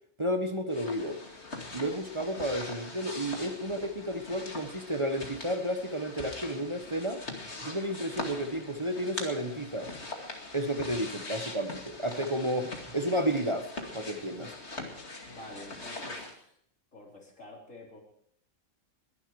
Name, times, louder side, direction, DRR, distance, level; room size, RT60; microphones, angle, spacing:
voice 1, 0.2-1.2 1.7-7.2 7.6-9.9 10.5-13.7 13.9-14.5, equal, 25° right, 6 dB, 1.1 m, -32 dB
sound 1, 0.7-16.3, left 2 dB, 60° left, 2.7 m, -42 dB
voice 2, 14.9-16.5 16.9-18.0, left 1 dB, 80° left, -1 dB, 4.4 m, -49 dB
21.5 x 11.5 x 4.8 m, 0.67 s
omnidirectional pair, 1.3 m